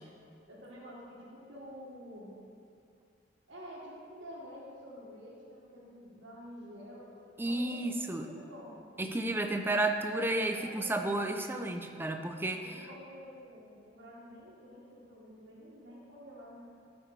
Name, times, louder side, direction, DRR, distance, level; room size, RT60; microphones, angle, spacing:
voice 1, 0.4-2.4 3.5-7.1 7.4-8.8 10.5-11.1 12.6-16.6, equal, 80° right, -6 dB, 1.7 m, -49 dB
voice 2, 7.4-8.3 9.0-12.8, right 2 dB, 10° right, 5 dB, 0.5 m, -32 dB
13.5 x 6.0 x 3.3 m, 2.4 s
head